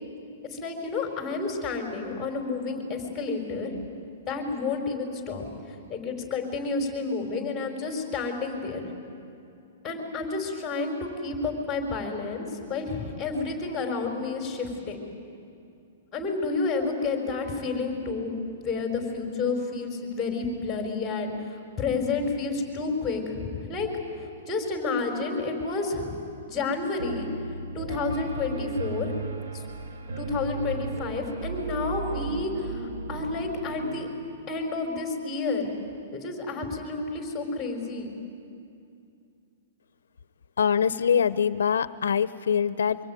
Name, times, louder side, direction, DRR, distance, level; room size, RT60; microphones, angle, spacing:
voice 1, 0.5-3.7 4.3-5.4 5.9-8.8 9.8-15.0 16.1-18.3 18.6-23.9 24.5-26.2 26.5-27.3 27.7-29.1 29.5-29.6 30.2-34.1 34.5-35.7 36.1-38.1, left 3 dB, 10° left, 2 dB, 4.7 m, -30 dB
Piano, 27.0-34.0, right 3 dB, 70° right, 2.1 m, -35 dB
voice 2, 40.6-43.0, left 7 dB, 90° left, 15 dB, 0.7 m, -24 dB
24.5 x 23.0 x 9.2 m, 2.6 s
hypercardioid pair, 150°, 0 cm